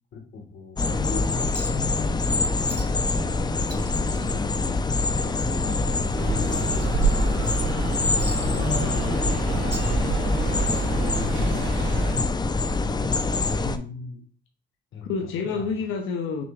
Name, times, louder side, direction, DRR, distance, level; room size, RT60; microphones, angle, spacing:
voice 1, 0.1-4.5 5.0-7.0 8.2-11.6 14.9-15.8, left 4 dB, 70° left, 1.1 m, -38 dB
sound 1, 0.8-13.8, left 3 dB, 20° left, 0.4 m, -25 dB
Chink clink, 1.5-1.9 2.2-2.3 2.7-3.1 3.4-5.1 5.5-5.6 6.1-7.5 8.2-9.3 9.6-10.5 11.6-11.7, right 3 dB, 55° right, 1.3 m, -45 dB
sound 2, 6.2-12.1, right 3 dB, 75° right, 1.8 m, -27 dB
voice 2, 13.6-14.2 15.0-16.4, left 5 dB, 90° left, 0.6 m, -29 dB
6.0 x 2.3 x 3.2 m
cardioid pair, 90°, 20 cm